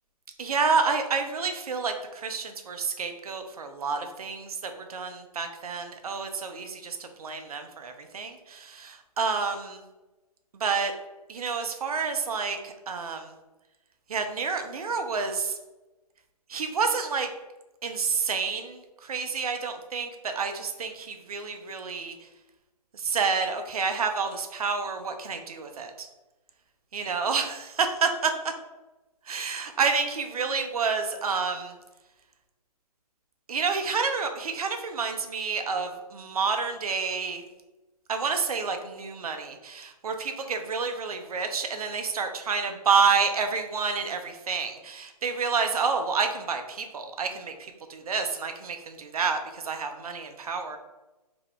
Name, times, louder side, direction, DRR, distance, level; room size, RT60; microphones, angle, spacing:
voice 1, 0.4-9.8 10.5-10.9 11.3-13.3 14.1-15.6 16.5-17.3 17.8-22.1 22.9-26.1 26.9-28.3 29.3-31.7 33.5-37.4 38.1-50.8, right 5 dB, 65° right, 6 dB, 0.7 m, -29 dB
3.7 x 2.9 x 3.5 m, 1.1 s
figure-of-eight pair, 140°, 20 cm